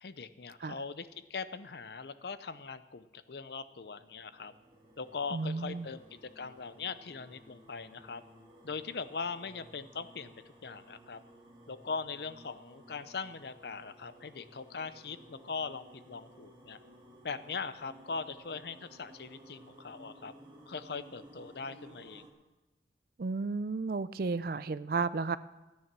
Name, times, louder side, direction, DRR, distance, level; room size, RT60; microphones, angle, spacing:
voice 1, 0.0-4.5 5.0-8.2 8.6-10.3 10.6-11.2 11.7-16.8 17.2-20.3 20.7-22.3, left 5 dB, 65° left, 13 dB, 0.6 m, -41 dB
sound 1, 3.6-22.3, right 1 dB, 25° right, 1.7 m, -57 dB
voice 2, 5.3-5.9 23.2-25.4, right 4 dB, 55° right, 15 dB, 0.4 m, -33 dB
14.0 x 9.6 x 6.0 m, 1.1 s
head